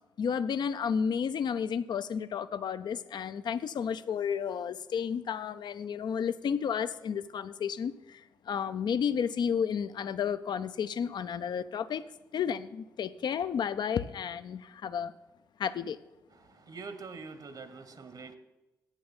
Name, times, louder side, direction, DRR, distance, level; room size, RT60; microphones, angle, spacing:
voice 1, 0.2-8.2 8.5-12.0 12.3-15.1 15.6-16.0, left 7 dB, 60° left, 0.5 m, -32 dB
voice 2, 16.6-18.4, right 4 dB, 55° right, 1.1 m, -44 dB
8.7 x 7.3 x 7.2 m
supercardioid pair, 50°, 8 cm